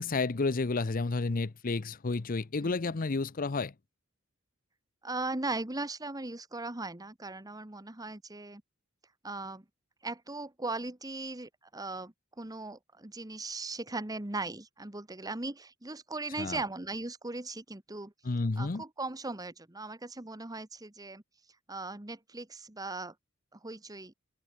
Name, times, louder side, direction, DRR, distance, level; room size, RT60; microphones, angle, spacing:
voice 1, 0.0-3.7 16.4-16.6 18.3-18.8, left 3 dB, 40° left, 0.7 m, -31 dB
voice 2, 5.0-8.6 9.2-9.6 10.0-18.1 18.6-21.2 21.7-23.1 23.5-24.1, right 2 dB, 20° right, 1.3 m, -38 dB
head